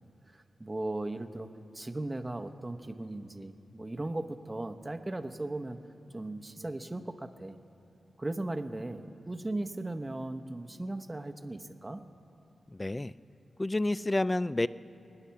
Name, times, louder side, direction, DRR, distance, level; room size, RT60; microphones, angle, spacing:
voice 1, 0.3-5.8 6.1-7.6 8.2-12.0, right 2 dB, 25° right, 8 dB, 0.9 m, -37 dB
voice 2, 12.7-13.1 13.6-14.7, left 2 dB, 25° left, 17 dB, 0.4 m, -29 dB
22.5 x 9.9 x 5.8 m, 2.9 s
cardioid pair, 50°, 0 cm